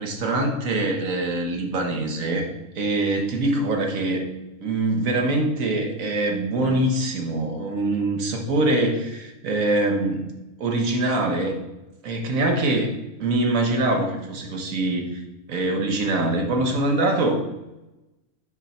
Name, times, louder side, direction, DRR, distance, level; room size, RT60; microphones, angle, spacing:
voice 1, 0.0-2.5 2.7-4.2 4.6-10.3 10.6-11.6 12.0-12.9 13.2-15.2 15.5-17.4, right 2 dB, 80° right, 3 dB, 1.5 m, -23 dB
6.8 x 5.4 x 4.2 m, 0.98 s
omnidirectional pair, 1.4 m